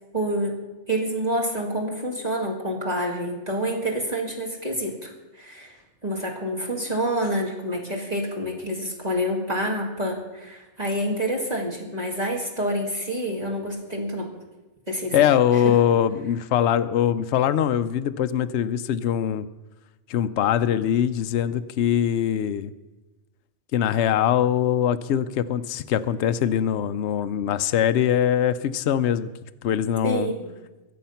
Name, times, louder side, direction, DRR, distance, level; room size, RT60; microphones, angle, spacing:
voice 1, 0.1-0.5 0.9-14.3 14.9-15.2 15.5-15.7 30.0-30.5, equal, 35° right, -2 dB, 2.3 m, -28 dB
voice 2, 15.1-19.5 20.1-22.7 23.7-29.3 29.6-30.3, left 10 dB, 70° left, 11 dB, 0.9 m, -22 dB
22.5 x 8.5 x 5.7 m, 1.1 s
omnidirectional pair, 1.2 m